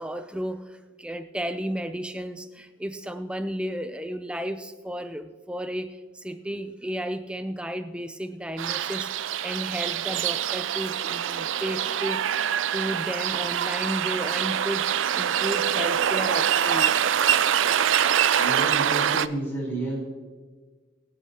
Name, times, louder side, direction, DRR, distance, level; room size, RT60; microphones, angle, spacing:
voice 1, 0.0-12.2 12.7-17.0, equal, 5° right, 8 dB, 0.5 m, -33 dB
sound 1, 8.6-19.3, right 9 dB, 90° right, 0.4 m, -24 dB
voice 2, 18.4-20.1, right 1 dB, 10° left, -6 dB, 4.2 m, -31 dB
24.0 x 8.1 x 2.9 m, 1.4 s
head